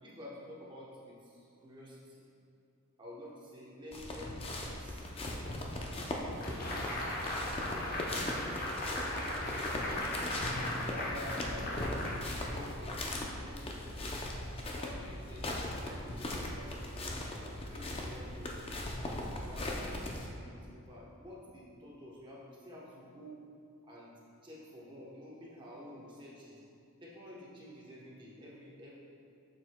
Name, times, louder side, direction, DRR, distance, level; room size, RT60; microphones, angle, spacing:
voice 1, 0.0-2.3 3.0-5.1 6.3-6.8 7.1-9.3 10.4-14.4 14.7-17.4 17.7-18.7 19.4-23.4 23.8-24.1 24.4-26.6 27.0-28.9, left 1 dB, 20° right, -6 dB, 0.9 m, -50 dB
sound 1, 3.9-20.3, left 1 dB, 25° left, 0.5 m, -39 dB
sound 2, 6.4-12.9, left 1 dB, 40° left, 0.9 m, -38 dB
7.1 x 6.5 x 2.2 m, 2.5 s
head